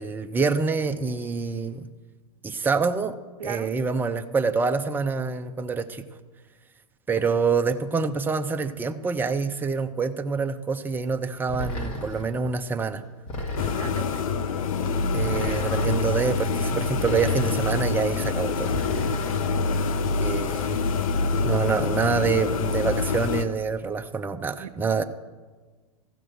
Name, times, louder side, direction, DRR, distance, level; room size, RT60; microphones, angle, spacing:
voice 1, 0.0-1.9 2.4-3.2 3.4-6.0 7.1-13.0 15.1-18.8 20.2-20.8 21.4-25.0, right 5 dB, 10° right, 7 dB, 0.6 m, -26 dB
voice 2, 3.4-3.7 13.7-14.5 20.5-20.6 24.6-24.7, right 8 dB, 85° right, 12 dB, 0.5 m, -37 dB
sound 1, 11.5-12.4 13.3-14.2 15.2-16.1 16.9-17.8 18.6-19.6, equal, 40° left, 2.3 m, -34 dB
sound 2, 13.6-23.4, left 4 dB, 70° left, 0.8 m, -26 dB
15.0 x 6.1 x 6.6 m, 1.4 s
hypercardioid pair, 105°, 19 cm